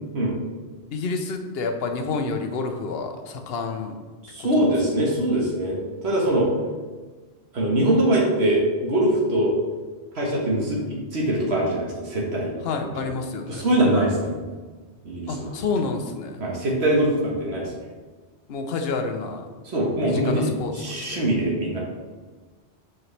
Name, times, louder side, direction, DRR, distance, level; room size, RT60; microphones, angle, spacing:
voice 1, 0.9-4.0 4.4-4.7 6.3-6.6 12.6-13.7 15.3-16.4 18.5-19.5 20.0-21.3, left 4 dB, 65° left, 5 dB, 0.9 m, -29 dB
voice 2, 4.2-6.5 7.5-9.5 10.1-10.8 11.1-12.5 13.5-14.4 15.0-15.5 16.4-17.7 19.6-21.8, right 1 dB, 75° right, -3 dB, 1.5 m, -22 dB
7.7 x 4.7 x 3.3 m, 1.4 s
omnidirectional pair, 1.1 m